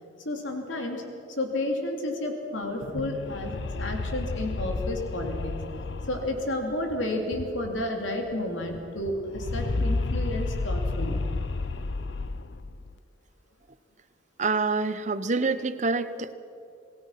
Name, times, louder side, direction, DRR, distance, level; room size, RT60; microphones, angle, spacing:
voice 1, 0.2-1.0 1.3-5.6 6.1-11.2, left 1 dB, 85° left, 3 dB, 3.1 m, -31 dB
sound 1, 2.7-8.0 8.3-8.4 8.6-13.0, left 3 dB, 65° left, 0.7 m, -32 dB
voice 2, 14.4-16.3, right 4 dB, 40° right, 12 dB, 0.9 m, -26 dB
27.5 x 19.5 x 5.9 m, 2.7 s
head